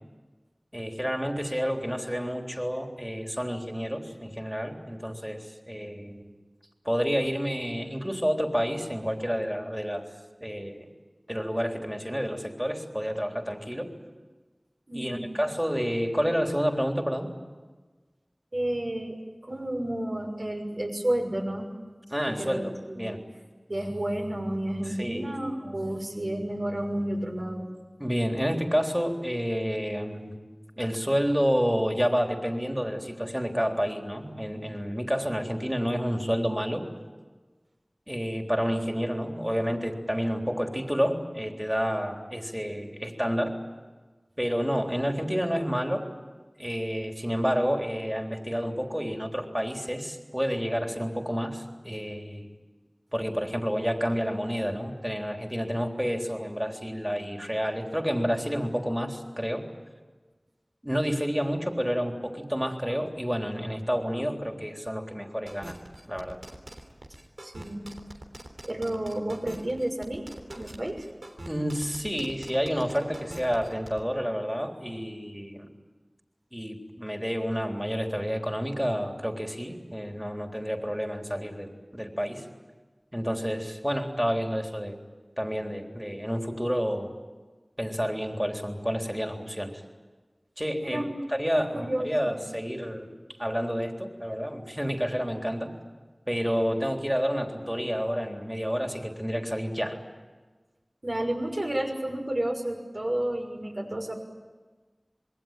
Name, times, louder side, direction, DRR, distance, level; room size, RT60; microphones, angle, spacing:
voice 1, 0.7-6.3 6.9-10.1 10.4-10.9 11.3-13.9 14.9-17.3 22.1-23.2 24.9-25.3 28.0-30.3 30.8-36.8 38.1-43.5 44.4-46.1 46.6-52.5 53.1-59.6 60.8-65.8 66.1-66.4 71.5-75.7 76.5-82.5 83.1-85.0 85.4-87.1 87.8-89.7 90.6-91.0 91.3-93.1 93.4-95.7 96.3-100.0, equal, 5° right, 3 dB, 3.6 m, -29 dB
voice 2, 14.9-15.3 18.5-21.7 22.2-23.0 23.7-27.7 67.4-67.9 68.6-70.2 70.5-71.0 90.8-91.1 91.5-92.3 101.0-104.1, right 1 dB, 60° right, 1 dB, 6.4 m, -31 dB
sound 1, 65.5-74.0, right 1 dB, 85° right, 3.5 m, -43 dB
26.5 x 22.0 x 9.1 m, 1.3 s
wide cardioid pair, 45°, 0 cm